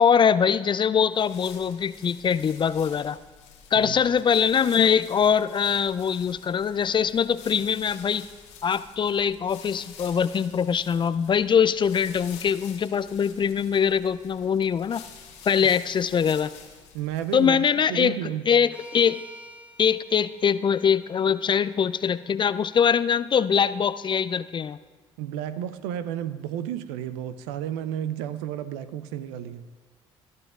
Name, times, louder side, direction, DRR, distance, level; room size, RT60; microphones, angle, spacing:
voice 1, 0.0-3.2 3.7-8.3 8.6-15.0 15.5-16.5 17.3-18.2 18.5-19.2 19.8-24.8, left 7 dB, 30° left, 15 dB, 0.4 m, -22 dB
sound 1, 1.1-17.6, left 7 dB, 75° left, 1.6 m, -48 dB
voice 2, 16.9-18.4 25.2-29.6, right 10 dB, 70° right, 12 dB, 0.5 m, -32 dB
sound 2, 18.7-22.9, equal, 10° right, 1.6 m, -50 dB
20.0 x 12.0 x 2.4 m, 1.4 s
figure-of-eight pair, 50°, 15 cm